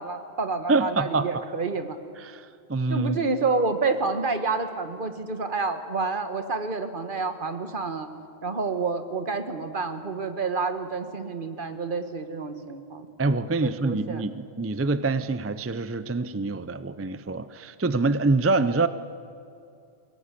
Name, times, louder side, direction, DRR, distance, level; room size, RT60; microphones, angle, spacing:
voice 1, 0.0-2.0 2.9-8.1 8.4-13.1 13.6-14.2, right 4 dB, 50° right, 8 dB, 1.5 m, -29 dB
voice 2, 0.7-1.4 2.2-3.3 13.2-18.9, right 3 dB, 20° right, 13 dB, 0.4 m, -26 dB
22.5 x 17.0 x 8.4 m, 2.5 s
omnidirectional pair, 1.1 m